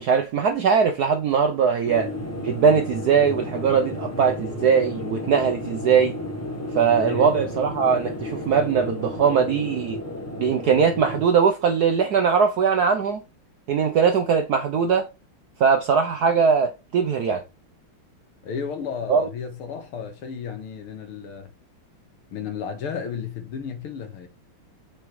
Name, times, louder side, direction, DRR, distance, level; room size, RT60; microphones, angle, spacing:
voice 1, 0.0-2.1 2.4-6.2 6.7-10.0 10.4-13.2 13.7-15.1 15.6-17.4 19.1-19.3, right 6 dB, 70° right, 0.9 m, -20 dB
sound 1, 1.8-11.3, left 1 dB, 15° left, 0.6 m, -32 dB
voice 2, 7.0-7.4 18.4-21.5 22.3-24.3, left 6 dB, 75° left, 2.3 m, -33 dB
7.0 x 6.5 x 3.1 m
omnidirectional pair, 2.4 m